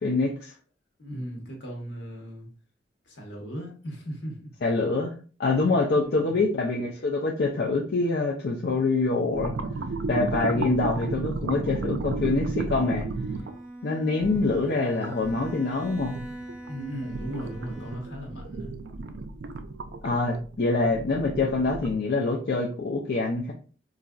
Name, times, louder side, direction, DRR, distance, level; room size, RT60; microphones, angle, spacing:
voice 1, 0.0-0.5 4.6-5.1 5.4-9.5 10.1-13.1 13.8-16.2 20.0-23.5, left 3 dB, 60° left, 0 dB, 0.4 m, -25 dB
voice 2, 1.0-2.5 3.1-4.5 6.2-6.5 16.7-18.7, equal, 80° left, 0 dB, 1.1 m, -37 dB
sound 1, 9.3-13.6 14.2-15.5 15.9-22.0, right 3 dB, 75° right, 0.4 m, -33 dB
Bowed string instrument, 13.1-18.4, right 1 dB, 5° right, 0.7 m, -42 dB
4.0 x 2.5 x 2.3 m, 0.39 s
head